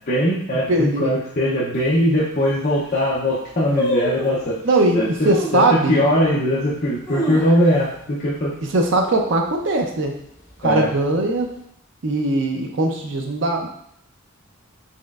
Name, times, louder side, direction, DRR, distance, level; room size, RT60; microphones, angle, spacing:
voice 1, 0.1-4.6 4.9-8.5 10.6-10.9, left 1 dB, 40° left, -7 dB, 0.6 m, -20 dB
voice 2, 0.7-1.1 4.6-6.0 8.6-10.1 10.6-11.5 12.0-13.7, right 2 dB, 60° right, 3 dB, 0.6 m, -20 dB
sound 1, 1.7-1.8 2.5-2.6 2.8-3.2 3.8-4.5 5.3-5.7 6.2-6.3 6.8-7.9 8.2-8.3 8.7-9.0 9.4-9.8 10.4-11.2 11.5-11.6, left 1 dB, 15° left, 0.9 m, -27 dB
4.2 x 3.0 x 2.4 m, 0.71 s
head